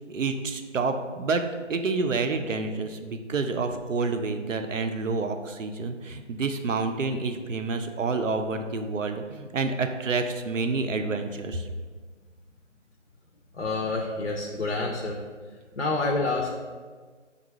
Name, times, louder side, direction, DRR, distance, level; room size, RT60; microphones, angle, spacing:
voice 1, 0.1-1.4 1.7-11.7, right 4 dB, 75° right, 6 dB, 0.5 m, -28 dB
voice 2, 13.5-15.2 15.7-16.5, left 3 dB, 65° left, 1 dB, 0.5 m, -28 dB
3.9 x 2.3 x 4.5 m, 1.5 s
figure-of-eight pair, 175°, 38 cm